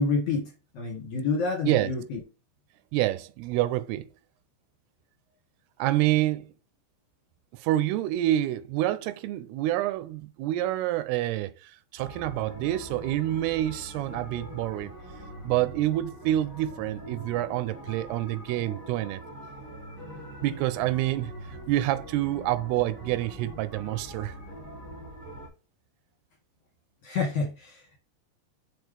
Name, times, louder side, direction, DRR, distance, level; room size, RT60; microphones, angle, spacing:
voice 1, 0.0-2.2 27.0-28.0, left 4 dB, 55° left, 2.1 m, -28 dB
voice 2, 2.9-4.1 5.8-6.5 7.5-14.9 15.4-19.2 20.4-21.3 21.7-24.3, right 14 dB, 90° right, 2.6 m, -27 dB
sound 1, 12.0-25.5, right 1 dB, 5° right, 1.0 m, -43 dB
6.2 x 4.5 x 3.4 m
omnidirectional pair, 4.6 m